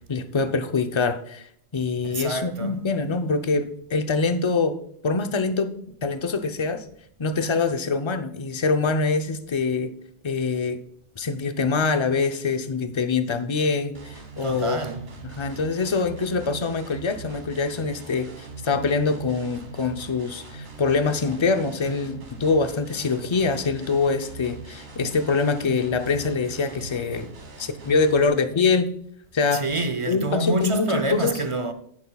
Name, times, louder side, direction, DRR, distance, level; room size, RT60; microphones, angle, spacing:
voice 1, 0.1-1.5 1.7-4.8 5.0-5.8 6.0-6.8 7.2-9.9 10.2-10.8 11.2-14.8 15.2-27.3 27.6-28.9 29.3-29.7 30.1-31.4, left 4 dB, 35° left, 0.5 m, -24 dB
voice 2, 2.0-2.7 14.4-15.0 29.5-31.7, right 2 dB, 35° right, 0.6 m, -27 dB
sound 1, 13.9-28.3, right 3 dB, 85° right, 1.8 m, -42 dB
10.5 x 9.8 x 2.3 m
omnidirectional pair, 1.1 m